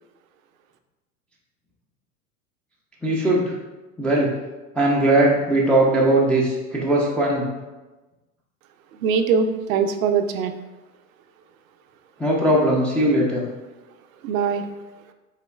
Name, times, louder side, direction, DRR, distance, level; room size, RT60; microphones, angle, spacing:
voice 1, 3.0-3.5 4.0-4.3 4.7-7.5 12.2-13.4, right 1 dB, 5° left, -4 dB, 0.3 m, -19 dB
voice 2, 8.9-10.5 14.2-14.7, right 6 dB, 65° right, 7 dB, 0.6 m, -22 dB
5.6 x 3.6 x 2.2 m, 1.1 s
hypercardioid pair, 90°, 45 cm